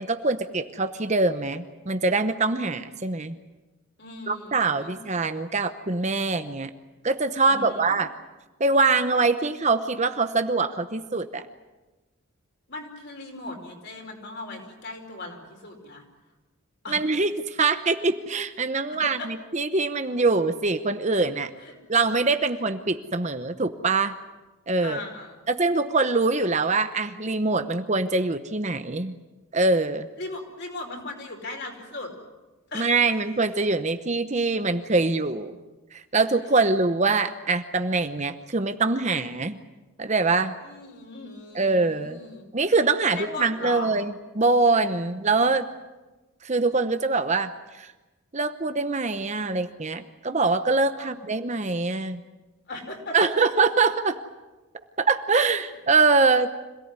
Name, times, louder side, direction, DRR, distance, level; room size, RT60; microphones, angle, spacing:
voice 1, 0.0-3.4 4.3-6.7 7.0-8.1 8.6-11.4 16.9-21.5 21.9-24.1 24.7-25.0 25.5-29.1 29.5-30.1 32.7-35.6 35.9-39.6 40.0-40.5 41.5-42.2 42.5-45.7 46.4-47.9 48.3-52.2 53.1-54.2 55.0-56.5, right 3 dB, 30° right, 9 dB, 0.9 m, -24 dB
voice 2, 4.0-5.0 7.5-8.0 12.7-16.0 16.8-17.0 18.9-19.3 21.6-21.8 24.8-25.4 30.2-32.1 32.7-33.0 40.6-42.5 43.1-43.9 51.0-51.1 52.7-53.5, left 2 dB, 50° left, 2 dB, 4.9 m, -38 dB
26.5 x 17.5 x 9.7 m, 1.2 s
head